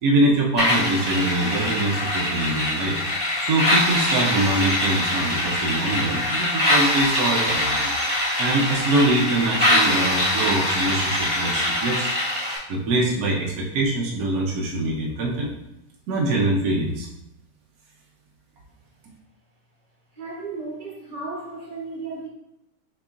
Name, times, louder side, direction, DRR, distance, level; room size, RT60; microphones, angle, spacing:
voice 1, 0.0-3.0 3.4-7.9 8.4-12.1 12.7-15.5 16.1-17.1, right 2 dB, 70° right, -2 dB, 0.9 m, -23 dB
sound 1, 0.6-12.6, left 1 dB, 5° right, 1.1 m, -23 dB
voice 2, 20.1-22.3, right 3 dB, 30° right, -5 dB, 0.7 m, -34 dB
6.4 x 2.9 x 2.4 m, 0.86 s
omnidirectional pair, 2.2 m